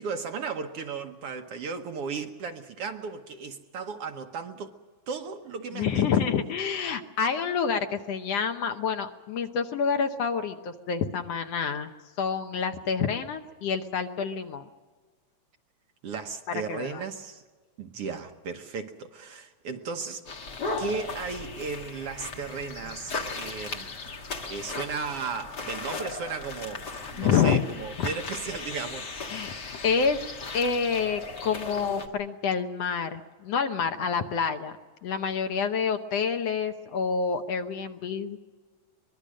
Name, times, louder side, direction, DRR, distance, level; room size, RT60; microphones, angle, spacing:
voice 1, 0.0-4.7 5.1-6.1 16.0-17.4 17.8-20.2 20.8-29.2, right 5 dB, 65° right, 1.8 m, -35 dB
voice 2, 5.7-11.9 12.2-14.7 16.7-17.0 27.2-27.6 28.0-28.1 29.3-29.5 29.8-34.7 35.0-38.4, left 6 dB, 65° left, 1.9 m, -28 dB
sound 1, 20.3-32.1, left 3 dB, 40° left, 2.0 m, -37 dB
24.0 x 21.5 x 6.4 m
omnidirectional pair, 3.3 m